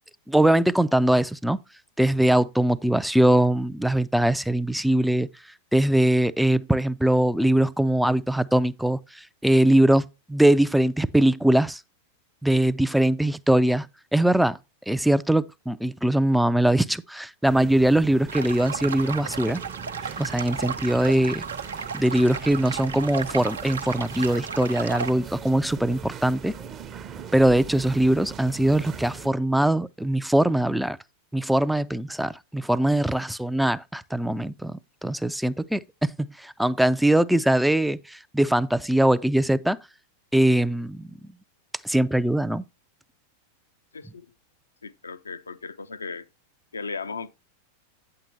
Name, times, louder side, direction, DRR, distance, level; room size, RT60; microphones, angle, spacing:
voice 1, 0.3-1.6 2.0-5.3 5.7-11.8 12.4-13.9 14.1-14.6 14.9-19.6 20.2-21.4 21.9-26.5 27.3-31.0 31.3-39.8 40.3-41.1 41.8-42.6, right 1 dB, ahead, 0.4 m, -22 dB
sound 1, 17.4-29.3, right 7 dB, 30° right, 0.7 m, -40 dB
sound 2, 18.3-25.1, right 5 dB, 70° right, 0.6 m, -34 dB
voice 2, 43.9-44.3 44.8-46.3 46.7-47.3, left 4 dB, 75° left, 0.5 m, -36 dB
8.8 x 7.6 x 2.7 m
figure-of-eight pair, 90°, 0 cm